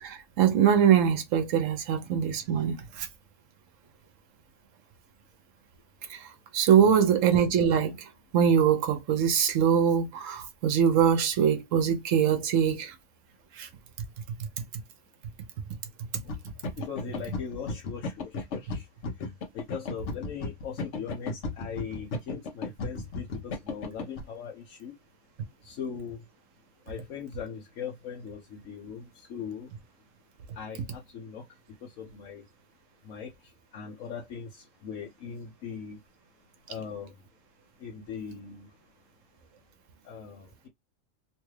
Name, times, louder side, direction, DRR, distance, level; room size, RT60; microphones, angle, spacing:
voice 1, 0.0-3.1 6.1-12.9 13.6-13.7, right 8 dB, 80° right, 1.1 m, -23 dB
sound 1, 16.1-24.2, left 3 dB, 70° left, 1.1 m, -35 dB
voice 2, 16.9-18.8 19.5-24.9 25.6-26.2 26.9-29.7 30.6-31.4 31.8-32.4 33.0-33.3 33.7-36.0 36.7-37.1 37.8-38.7 40.0-40.7, left 7 dB, 90° left, 1.1 m, -40 dB
3.1 x 2.3 x 3.1 m
omnidirectional pair, 1.3 m